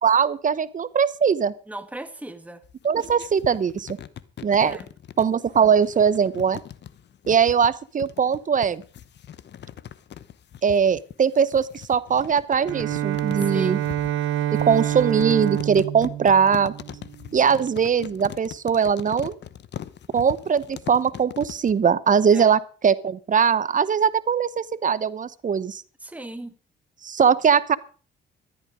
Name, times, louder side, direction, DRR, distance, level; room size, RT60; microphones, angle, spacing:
voice 1, 0.0-1.5 2.8-4.0 4.4-4.8 5.2-6.6 7.3-8.8 10.6-13.8 14.7-16.7 17.3-19.4 20.1-25.8 27.0-27.8, right 7 dB, 40° right, 18 dB, 0.9 m, -21 dB
voice 2, 1.7-2.6 4.6-4.9 13.4-13.9 22.3-22.5 26.0-26.6, right 1 dB, 5° right, 9 dB, 1.5 m, -37 dB
sound 1, 2.6-21.7, left 10 dB, 60° left, 1.0 m, -40 dB
Bowed string instrument, 12.6-17.5, right 12 dB, 90° right, 1.1 m, -27 dB
14.0 x 12.0 x 5.1 m, 0.38 s
cardioid pair, 90°, 20 cm